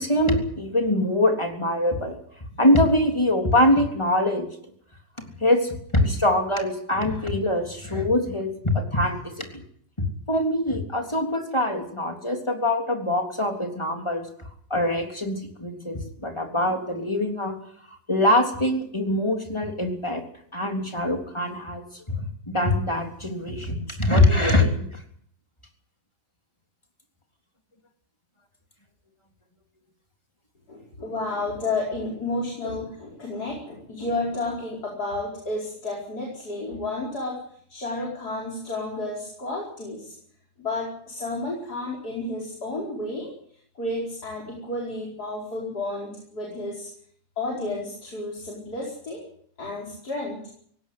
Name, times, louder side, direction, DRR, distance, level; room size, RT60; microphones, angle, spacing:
voice 1, 0.0-2.2 2.6-4.5 5.4-9.6 10.3-14.2 14.7-17.5 17.9-20.2 20.5-25.0, left 1 dB, 15° left, 4 dB, 3.5 m, -23 dB
voice 2, 30.7-37.4 37.7-40.1 40.6-43.3 43.8-46.9 47.4-49.2 49.6-50.5, left 2 dB, 75° left, -3 dB, 5.5 m, -31 dB
18.5 x 17.5 x 9.5 m, 0.63 s
omnidirectional pair, 1.7 m